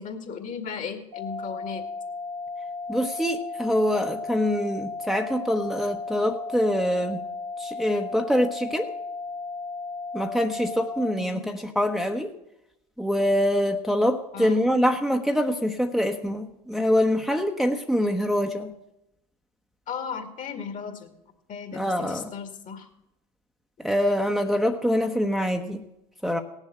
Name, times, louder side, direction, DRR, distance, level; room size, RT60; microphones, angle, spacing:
voice 1, 0.0-1.8 11.2-11.5 14.3-14.6 19.9-21.1 21.5-22.9, left 6 dB, 45° left, 7 dB, 2.2 m, -36 dB
sound 1, 1.1-11.1, left 3 dB, 80° right, 2.3 m, -35 dB
voice 2, 2.9-7.2 7.6-8.9 10.1-12.3 13.0-18.7 21.7-22.3 23.8-25.8 26.2-26.4, equal, ahead, 4 dB, 1.1 m, -24 dB
17.5 x 7.3 x 8.0 m, 0.87 s
hypercardioid pair, 75°, 19 cm